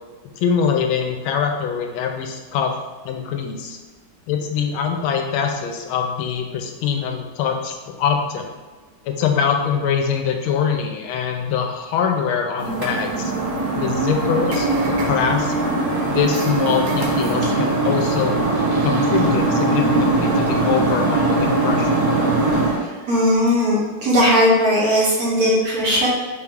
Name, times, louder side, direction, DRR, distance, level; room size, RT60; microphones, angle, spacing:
voice 1, 0.4-2.7 3.0-3.8 4.3-8.5 9.0-13.3 13.7-15.5 16.1-18.4 18.8-22.1, left 7 dB, 80° left, 4 dB, 1.4 m, -23 dB
sound 1, 12.6-22.8, right 2 dB, 75° right, 1.5 m, -20 dB
voice 2, 22.6-26.1, equal, 60° right, -5 dB, 1.1 m, -18 dB
4.2 x 2.9 x 3.6 m, 1.4 s
omnidirectional pair, 2.2 m